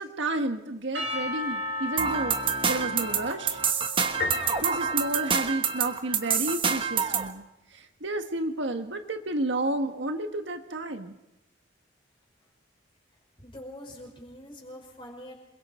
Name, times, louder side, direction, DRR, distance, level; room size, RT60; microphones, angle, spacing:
voice 1, 0.0-2.4 2.7-3.6 4.6-7.4 7.7-11.1, right 2 dB, 70° right, 6 dB, 1.6 m, -31 dB
Percussion / Church bell, 0.9-5.3, left 2 dB, 90° right, 7.6 m, -36 dB
sound 1, 2.0-7.3, right 6 dB, 30° right, 1.2 m, -27 dB
Piano, 4.2-6.0, left 4 dB, 65° left, 3.8 m, -35 dB
voice 2, 13.4-15.3, left 1 dB, 25° left, 1 dB, 5.4 m, -44 dB
27.5 x 22.0 x 4.5 m, 0.92 s
head